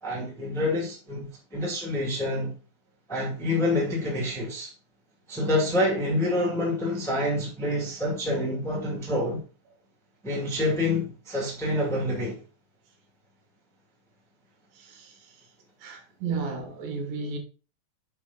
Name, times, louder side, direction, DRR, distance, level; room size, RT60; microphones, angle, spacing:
voice 1, 0.0-2.5 3.1-4.7 5.3-9.4 10.2-12.4, left 1 dB, ahead, 1.0 m, -27 dB
voice 2, 14.7-15.4 15.8-17.4, right 4 dB, 80° right, 3.0 m, -34 dB
7.1 x 4.6 x 3.8 m
omnidirectional pair, 4.0 m